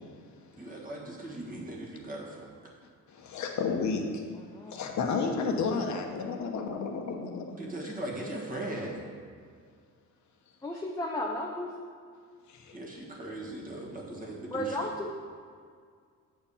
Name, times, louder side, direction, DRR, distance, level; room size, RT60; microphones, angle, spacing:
voice 1, 0.6-2.5 7.6-9.0 12.7-14.9, right 1 dB, 25° right, -3 dB, 1.6 m, -38 dB
voice 2, 3.1-4.2 4.7-7.6 12.5-12.8, left 4 dB, 60° left, 3 dB, 1.0 m, -32 dB
voice 3, 4.4-4.9 10.6-11.7 14.5-15.2, left 1 dB, 10° left, -1 dB, 0.5 m, -34 dB
8.5 x 4.5 x 6.9 m, 2.1 s
cardioid pair, 160°, 33 cm